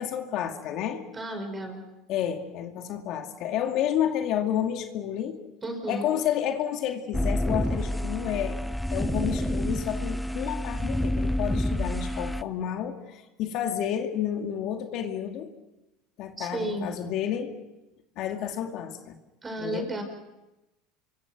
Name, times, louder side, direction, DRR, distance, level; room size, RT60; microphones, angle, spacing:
voice 1, 0.0-1.0 2.1-5.4 5.9-8.6 8.9-15.5 16.2-17.5 18.2-19.2 19.6-19.9, left 10 dB, 55° left, 4 dB, 2.3 m, -30 dB
voice 2, 1.1-1.8 5.6-6.1 16.4-16.9 19.4-20.0, right 1 dB, 20° right, 5 dB, 5.5 m, -33 dB
sound 1, 7.1-12.4, left 1 dB, 5° left, 0.7 m, -28 dB
27.0 x 24.0 x 6.1 m, 1.0 s
supercardioid pair, 110°, 0 cm